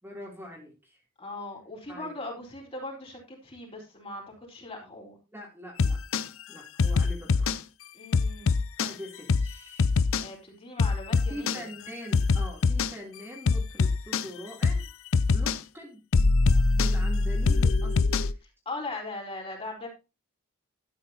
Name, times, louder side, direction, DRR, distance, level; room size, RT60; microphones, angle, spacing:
voice 1, 0.0-1.0 1.9-2.1 5.3-6.0 6.5-7.5 8.8-9.9 11.3-14.9 15.3-16.0 16.7-18.4, equal, 10° right, -3 dB, 3.1 m, -43 dB
voice 2, 1.2-5.2 7.9-8.6 10.2-11.7 18.4-19.9, left 2 dB, 25° left, -1 dB, 4.1 m, -39 dB
sound 1, 5.8-6.3 6.8-7.6 8.1-8.9 9.3-9.5 9.8-10.3 10.8-11.6 12.1-12.9 13.5-14.3 14.6-14.8 15.1-15.6 16.1-18.3, left 4 dB, 60° left, 0.6 m, -23 dB
12.5 x 9.3 x 2.8 m, 0.28 s
head